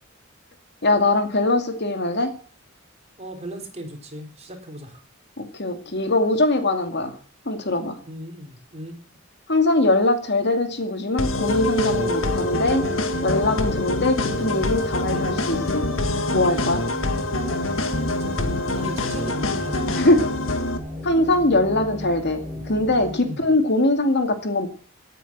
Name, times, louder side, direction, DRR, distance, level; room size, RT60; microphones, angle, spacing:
voice 1, 0.8-2.3 5.4-7.1 7.5-8.0 9.5-12.8 13.2-15.9 16.3-16.8 20.0-20.2 21.0-24.7, left 2 dB, 55° left, 6 dB, 2.3 m, -21 dB
voice 2, 3.2-5.0 8.1-9.0 17.6-17.8 18.2-20.1 23.2-23.5, equal, 35° right, 3 dB, 4.1 m, -37 dB
sound 1, 11.2-20.8, left 2 dB, 75° left, 1.9 m, -26 dB
sound 2, 11.4-23.2, left 1 dB, 10° right, 5.8 m, -33 dB
17.0 x 9.3 x 7.4 m, 0.43 s
head